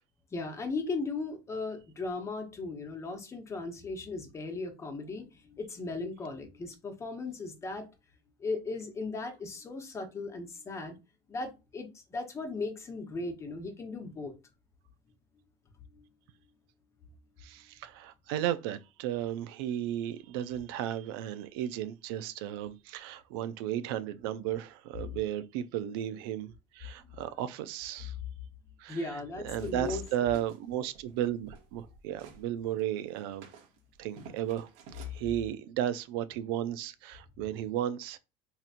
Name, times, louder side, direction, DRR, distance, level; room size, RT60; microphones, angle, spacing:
voice 1, 0.3-7.9 8.4-11.0 11.3-14.4 15.9-16.0 27.0-27.2 28.9-30.0, left 3 dB, 25° left, 0.9 m, -37 dB
voice 2, 17.4-28.1 28.8-29.0 29.4-33.5 34.0-34.7 35.1-38.2, right 11 dB, 85° right, 0.4 m, -34 dB
sound 1, 29.5-32.4 32.8-35.2, right 6 dB, 70° right, 1.0 m, -52 dB
4.1 x 2.8 x 2.5 m
cardioid pair, 125°, 12 cm